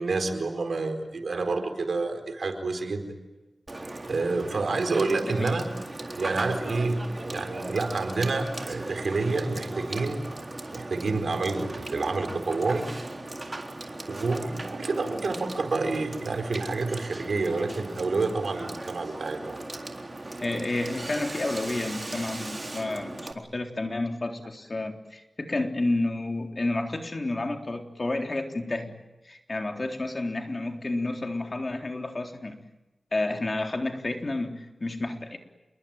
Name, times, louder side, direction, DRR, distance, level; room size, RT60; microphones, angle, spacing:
voice 1, 0.0-3.1 4.1-5.7 6.2-10.2 10.7-12.9 14.1-19.6, right 3 dB, 80° right, 7 dB, 4.6 m, -28 dB
Water / Water tap faucet / Sink (filling or washing), 3.7-23.3, right 2 dB, 35° right, 3.8 m, -38 dB
voice 2, 5.2-5.6 20.4-28.9 29.3-32.6 33.1-35.4, left 2 dB, 45° left, 4 dB, 3.8 m, -30 dB
28.5 x 22.5 x 9.0 m, 1.1 s
wide cardioid pair, 55°, 0 cm